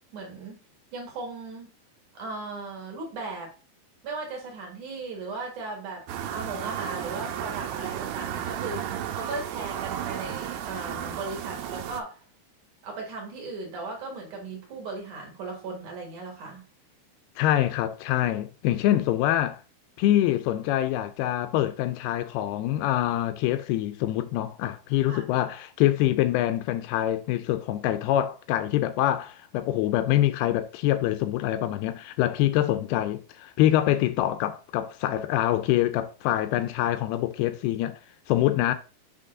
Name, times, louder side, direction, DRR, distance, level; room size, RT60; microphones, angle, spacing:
voice 1, 0.1-0.6 0.9-1.7 2.1-3.5 4.0-12.2 12.8-16.6 25.1-25.4, right 3 dB, 55° right, 2.6 m, -37 dB
sound 1, 6.1-12.0, right 10 dB, 85° right, 2.7 m, -33 dB
voice 2, 17.4-19.6 20.0-38.0 38.3-38.7, left 13 dB, 80° left, 2.4 m, -25 dB
7.8 x 3.8 x 3.7 m
omnidirectional pair, 4.7 m